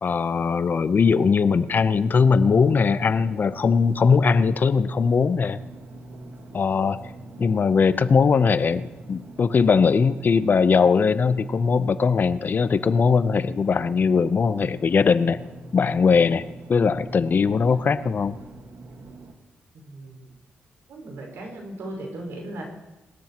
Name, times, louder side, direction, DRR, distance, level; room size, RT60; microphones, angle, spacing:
voice 1, 0.0-5.6 6.5-7.1 7.4-15.4 15.7-16.4 16.7-18.4, left 5 dB, 50° left, 14 dB, 0.7 m, -20 dB
sound 1, 1.6-19.3, right 3 dB, 65° right, 1.6 m, -44 dB
voice 2, 19.7-20.3 20.9-22.6, right 1 dB, 80° right, 1 dB, 5.1 m, -37 dB
20.5 x 13.0 x 3.0 m, 1.0 s
cardioid pair, 65°, 4 cm